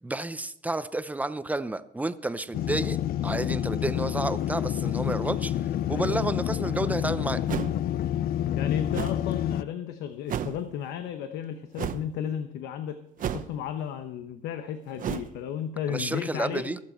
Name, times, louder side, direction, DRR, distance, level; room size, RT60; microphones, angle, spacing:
voice 1, 0.0-3.0 3.2-7.4 15.9-16.8, right 2 dB, 10° right, 13 dB, 0.7 m, -31 dB
sound 1, 2.5-9.6, left 11 dB, 60° left, 0.5 m, -28 dB
voice 2, 5.5-6.3 8.5-16.7, left 9 dB, 90° left, 9 dB, 0.9 m, -34 dB
sound 2, 7.5-7.9 8.9-9.2 10.3-10.6 11.8-12.1 13.2-13.7 15.0-15.3, right 9 dB, 55° right, 0.9 m, -32 dB
22.5 x 7.6 x 4.4 m, 0.71 s
cardioid pair, 110°, 17 cm